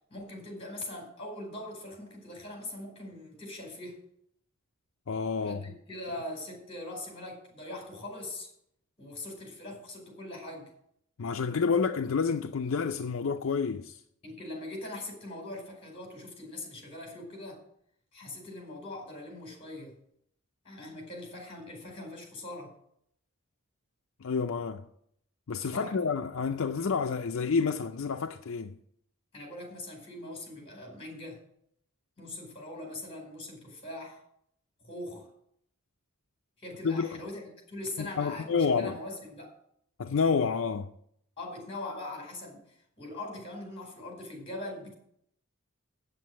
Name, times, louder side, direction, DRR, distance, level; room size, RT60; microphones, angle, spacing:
voice 1, 0.1-4.0 5.4-8.5 9.0-10.7 14.2-17.6 18.1-20.0 20.6-22.7 25.7-26.0 29.3-31.4 32.2-34.2 34.8-35.3 36.6-39.5 41.4-44.9, left 1 dB, 25° left, 4.4 m, -41 dB
voice 2, 5.1-5.6 11.2-14.0 24.2-24.8 25.5-28.8 36.8-37.1 38.0-39.0 40.0-40.9, left 5 dB, 60° left, 0.5 m, -29 dB
8.4 x 7.7 x 7.6 m
head